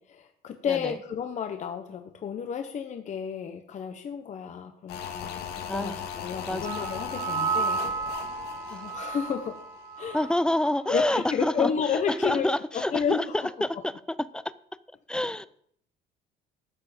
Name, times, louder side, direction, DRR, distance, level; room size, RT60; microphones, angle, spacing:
voice 1, 0.0-7.8 8.7-9.5 10.0-10.2 10.9-12.5 12.7-13.7, left 7 dB, 45° left, 1.0 m, -31 dB
sound 1, 4.9-10.1 10.3-10.4, left 8 dB, 85° left, 1.8 m, -38 dB
voice 2, 5.7-6.0 6.5-6.7 8.7-8.8 10.1-13.9 14.3-14.4 15.1-15.5, left 1 dB, 5° left, 0.5 m, -27 dB
sound 2, 6.6-10.7 11.0-11.2, right 5 dB, 65° right, 2.1 m, -33 dB
13.0 x 6.8 x 5.1 m
cardioid pair, 110°, 17 cm